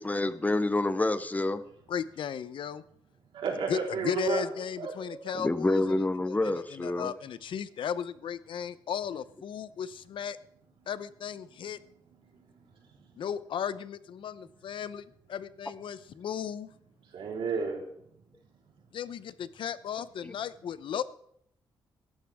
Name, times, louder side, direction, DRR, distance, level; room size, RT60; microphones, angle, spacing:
voice 1, 0.0-1.6 5.3-7.1 20.2-20.4, left 2 dB, 20° left, 13 dB, 0.8 m, -28 dB
voice 2, 1.9-2.8 3.7-10.4 10.9-11.8 13.2-14.3 14.6-14.9 15.6-16.7 18.9-21.0, left 8 dB, 75° left, 15 dB, 0.7 m, -35 dB
voice 3, 3.3-4.5 4.8-5.4 12.8-12.9 17.1-17.8, right 5 dB, 85° right, -1 dB, 4.1 m, -32 dB
16.5 x 13.0 x 3.6 m, 0.69 s
cardioid pair, 95°, 9 cm